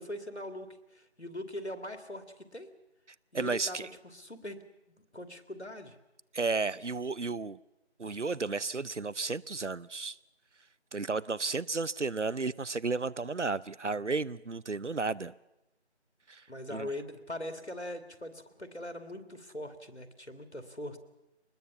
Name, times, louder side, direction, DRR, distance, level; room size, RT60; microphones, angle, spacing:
voice 1, 0.0-2.2 2.5-2.7 3.3-5.9 16.5-21.0, left 1 dB, 70° left, 2.6 m, -41 dB
voice 2, 3.3-3.9 6.3-7.6 8.0-10.2 10.9-15.3 16.3-16.4 16.7-16.9, right 4 dB, 90° right, 0.8 m, -33 dB
23.5 x 20.5 x 7.1 m
figure-of-eight pair, 180°, 35 cm